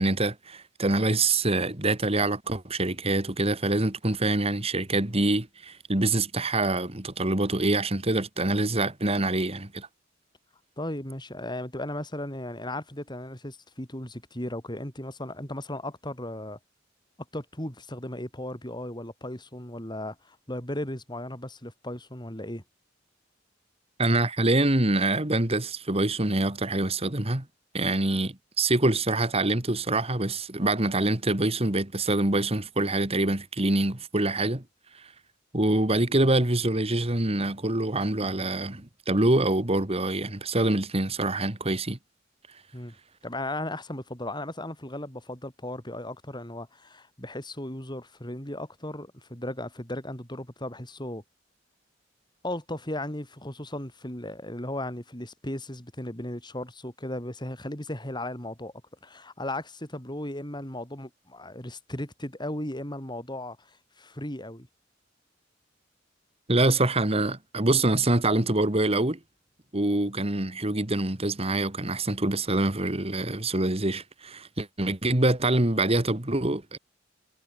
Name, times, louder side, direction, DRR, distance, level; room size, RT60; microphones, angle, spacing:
voice 1, 0.0-9.9 24.0-27.5 27.7-34.6 35.5-42.0 66.5-69.2 69.7-76.8, right 2 dB, 30° right, 2.3 m, -25 dB
voice 2, 10.8-16.6 17.3-22.6 42.7-42.9 43.2-51.2 52.4-58.7 59.0-63.7 64.0-64.7, left 1 dB, 25° left, 8.0 m, -36 dB
head